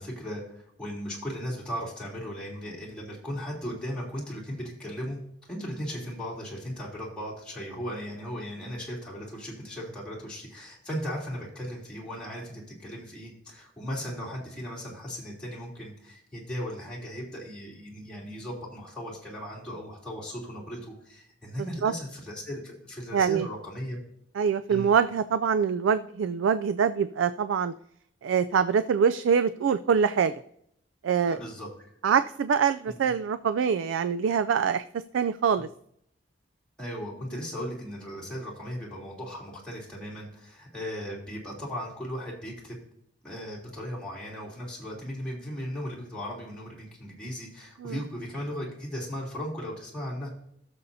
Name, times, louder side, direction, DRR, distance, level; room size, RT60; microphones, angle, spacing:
voice 1, 0.0-5.2 5.5-24.0 24.7-24.9 31.3-31.7 32.9-33.1 36.8-42.8 43.2-50.3, equal, 5° left, -6 dB, 3.0 m, -37 dB
voice 2, 23.1-23.5 24.3-27.7 28.2-30.3 31.0-31.4 32.0-34.8 35.1-35.7 47.8-48.0, right 7 dB, 85° right, 13 dB, 0.3 m, -24 dB
16.5 x 7.0 x 2.7 m, 0.72 s
head